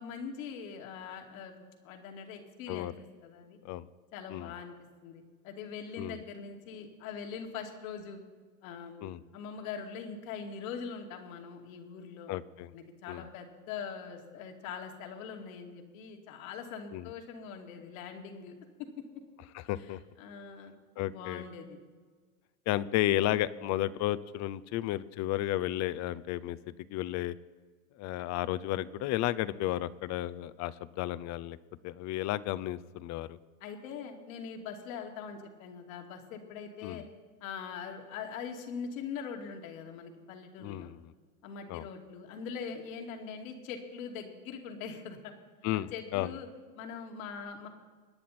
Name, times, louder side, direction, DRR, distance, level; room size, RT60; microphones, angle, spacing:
voice 1, 0.0-2.9 3.2-3.6 4.1-4.7 5.0-8.2 8.6-12.3 12.7-18.5 18.8-18.9 19.8-20.7 21.1-21.8 33.6-37.0 37.4-40.9 41.4-45.3 45.9-46.5 46.7-47.7, left 6 dB, 65° left, 3 dB, 2.7 m, -42 dB
voice 2, 12.3-12.7 13.1-13.2 16.9-17.1 19.5-20.0 21.0-21.4 22.7-26.6 26.9-27.4 28.0-31.6 31.8-33.4 36.8-37.0 40.6-41.1 41.7-41.8 45.6-46.3, left 14 dB, 40° left, 18 dB, 0.7 m, -33 dB
25.5 x 10.5 x 4.3 m, 1.5 s
hypercardioid pair, 105°, 44 cm